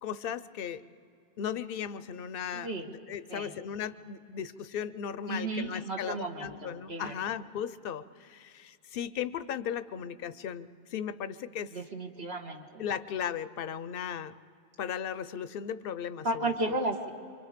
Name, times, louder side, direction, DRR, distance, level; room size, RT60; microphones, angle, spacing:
voice 1, 0.0-0.8 1.4-11.8 12.8-14.3 14.8-16.8, left 8 dB, 65° left, 14 dB, 0.8 m, -36 dB
voice 2, 2.5-2.9 3.3-3.5 5.3-7.1 11.7-12.8 16.2-17.1, right 2 dB, 75° right, 2 dB, 1.9 m, -34 dB
27.0 x 24.5 x 5.1 m, 2.4 s
omnidirectional pair, 1.1 m